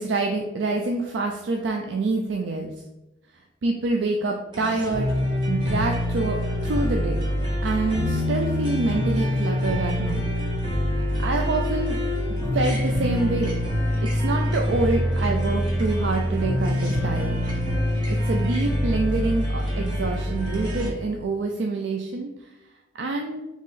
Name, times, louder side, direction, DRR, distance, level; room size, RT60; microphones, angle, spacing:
voice 1, 0.0-2.7 3.6-5.2 5.5-7.3 7.6-10.3 11.2-12.0 12.5-13.5 14.1-17.4 18.2-22.5 23.0-23.4, right 3 dB, 75° right, 2 dB, 0.4 m, -26 dB
sound 1, 4.5-20.9, equal, 25° right, 1.2 m, -25 dB
4.1 x 3.0 x 3.8 m, 1.0 s
head